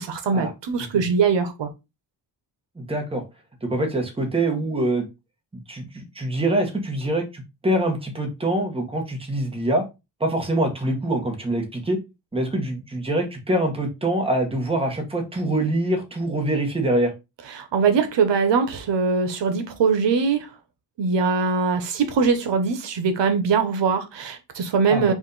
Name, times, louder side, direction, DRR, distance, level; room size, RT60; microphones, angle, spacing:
voice 1, 0.0-1.7 17.5-20.5 21.0-25.1, right 5 dB, 85° right, 1.0 m, -22 dB
voice 2, 2.8-3.2 3.6-5.0 5.5-9.8 10.2-12.0 12.3-17.1 24.9-25.1, right 1 dB, 15° right, 1.1 m, -24 dB
4.9 x 2.6 x 3.9 m
wide cardioid pair, 140°, 42 cm